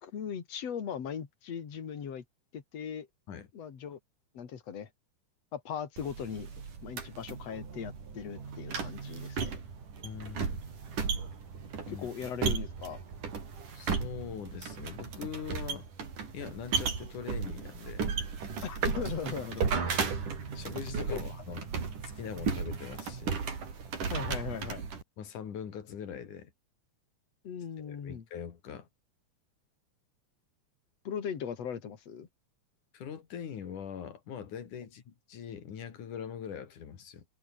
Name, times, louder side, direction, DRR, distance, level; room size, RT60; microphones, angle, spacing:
voice 1, 0.0-2.2 2.5-3.1 3.5-4.0 4.3-4.9 5.5-6.5 6.8-9.6 11.9-13.0 18.6-19.7 21.1-21.2 24.1-24.8 27.4-28.2 31.1-32.3, left 7 dB, 55° left, 3.7 m, -38 dB
sound 1, 6.0-25.0, right 5 dB, 85° right, 5.8 m, -35 dB
voice 2, 10.0-10.6 11.9-12.1 13.7-15.9 16.3-18.1 19.7-20.2 20.6-23.4 25.2-26.5 27.8-28.9 32.9-37.3, left 8 dB, 80° left, 4.1 m, -42 dB
omnidirectional pair, 3.6 m